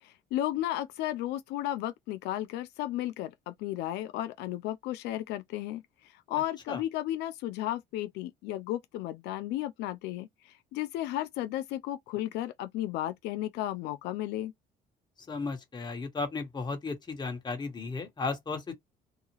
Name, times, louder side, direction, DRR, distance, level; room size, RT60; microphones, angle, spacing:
voice 1, 0.0-14.5, left 13 dB, 85° left, 0.4 m, -34 dB
voice 2, 15.3-18.7, left 4 dB, 25° left, 1.1 m, -35 dB
2.8 x 2.3 x 2.9 m
cardioid pair, 110°, 17 cm